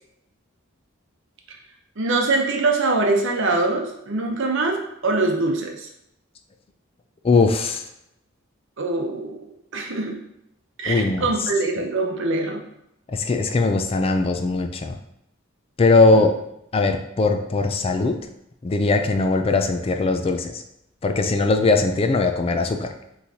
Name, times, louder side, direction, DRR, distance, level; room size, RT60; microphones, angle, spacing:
voice 1, 2.0-5.9 8.8-9.4 9.7-10.2 10.8-12.6 16.1-16.3, right 3 dB, 65° right, 2 dB, 0.8 m, -23 dB
voice 2, 7.2-7.8 10.9-11.3 13.1-15.0 15.8-16.3 16.7-18.2 18.6-20.6 21.0-22.9, left 3 dB, 30° left, 5 dB, 0.3 m, -20 dB
5.6 x 3.2 x 2.7 m, 0.80 s
head